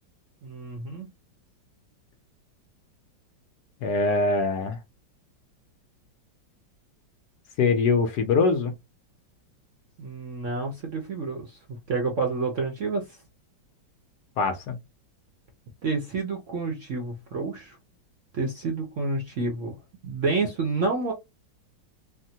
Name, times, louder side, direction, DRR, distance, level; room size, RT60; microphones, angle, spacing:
voice 1, 0.4-1.1 10.0-13.0 15.8-17.8 18.3-19.8 20.0-21.1, right 3 dB, 60° right, 0.8 m, -29 dB
voice 2, 3.8-4.8 7.6-8.7 14.4-14.8, left 4 dB, 70° left, 1.1 m, -23 dB
3.5 x 2.1 x 2.7 m
omnidirectional pair, 2.0 m